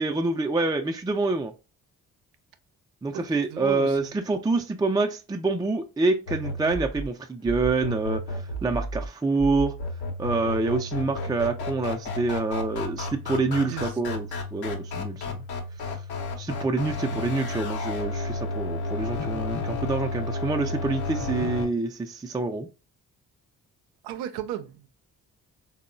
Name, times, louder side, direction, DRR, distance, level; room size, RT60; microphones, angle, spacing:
voice 1, 0.0-1.5 3.0-9.7 10.2-15.3 16.4-22.7, right 3 dB, 10° right, 0.4 m, -27 dB
voice 2, 3.5-4.1 13.5-14.0 17.1-17.2 24.0-24.9, right 11 dB, 85° right, 0.5 m, -34 dB
sound 1, 6.3-21.7, left 2 dB, 70° left, 0.8 m, -32 dB
3.5 x 2.0 x 2.5 m
hypercardioid pair, 40°, 39 cm